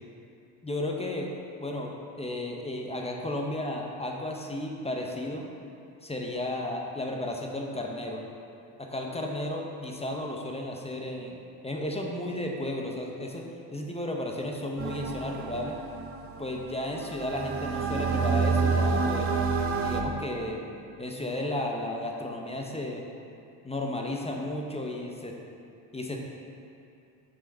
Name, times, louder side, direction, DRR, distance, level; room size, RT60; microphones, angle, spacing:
voice 1, 0.6-1.3 1.6-5.5 6.0-8.2 8.8-15.8 16.4-19.3 19.8-20.6 21.0-23.0 23.6-25.4 25.9-26.2, left 1 dB, 15° left, 0 dB, 0.7 m, -33 dB
sound 1, 14.8-20.0, right 4 dB, 30° right, 0.6 m, -28 dB
5.7 x 5.0 x 4.2 m, 2.6 s
supercardioid pair, 80°, 48 cm